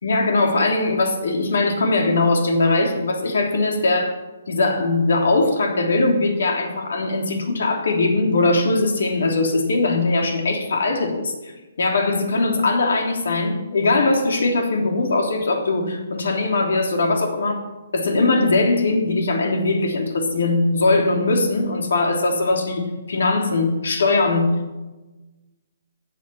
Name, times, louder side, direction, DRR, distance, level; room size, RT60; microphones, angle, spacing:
voice 1, 0.0-4.2 4.5-11.5 11.8-17.6 17.9-24.5, left 2 dB, 75° left, 2 dB, 3.3 m, -20 dB
16.0 x 9.5 x 6.0 m, 1.1 s
hypercardioid pair, 170°, 0 cm